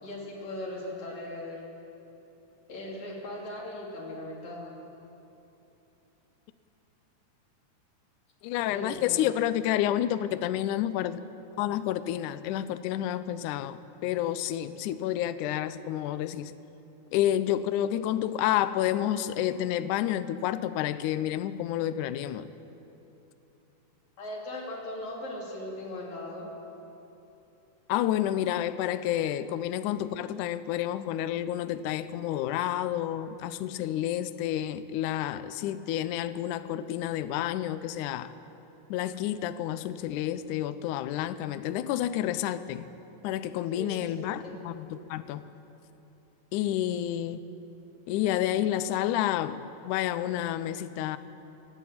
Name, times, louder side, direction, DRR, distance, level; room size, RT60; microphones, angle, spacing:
voice 1, 0.0-1.6 2.7-4.8 8.7-9.2 24.2-26.5 43.8-44.0 44.4-44.6, left 1 dB, 50° left, -3 dB, 4.4 m, -38 dB
voice 2, 8.4-11.2 11.6-16.5 17.1-22.5 27.9-38.3 38.9-42.9 43.2-45.4 46.5-47.4 48.1-51.2, left 12 dB, 90° left, 12 dB, 1.7 m, -29 dB
28.5 x 10.5 x 8.6 m, 2.9 s
omnidirectional pair, 4.4 m